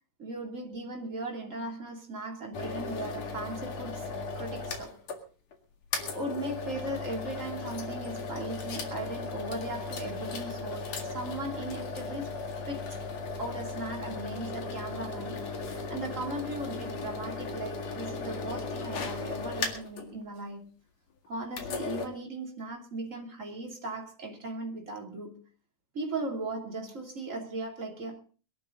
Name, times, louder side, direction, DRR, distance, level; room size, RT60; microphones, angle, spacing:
voice 1, 0.2-5.0 6.1-12.3 12.7-13.0 13.4-20.7 21.3-25.4 25.9-28.2, right 2 dB, 25° right, 3.0 m, -38 dB
sound 1, 2.5-5.2 5.5-5.6 5.9-20.1 21.5-22.1, left 4 dB, 55° left, 3.0 m, -36 dB
22.0 x 12.5 x 3.9 m
omnidirectional pair, 3.7 m